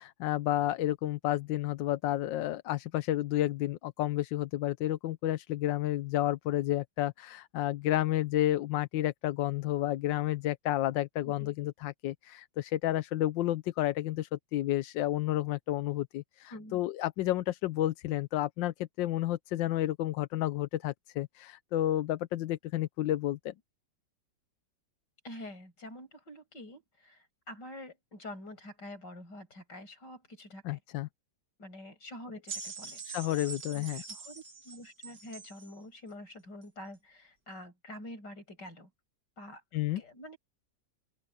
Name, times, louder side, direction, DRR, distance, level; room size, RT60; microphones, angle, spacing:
voice 1, 0.0-23.5 30.6-31.1 33.0-34.0 39.7-40.0, left 14 dB, 85° left, 1.4 m, -31 dB
voice 2, 16.5-16.8 25.2-30.8 31.6-33.0 33.7-38.9 39.4-40.4, left 1 dB, 70° left, 7.9 m, -47 dB
sound 1, 32.5-35.7 36.6-36.7, right 5 dB, 65° right, 2.9 m, -44 dB
open air
omnidirectional pair, 2.0 m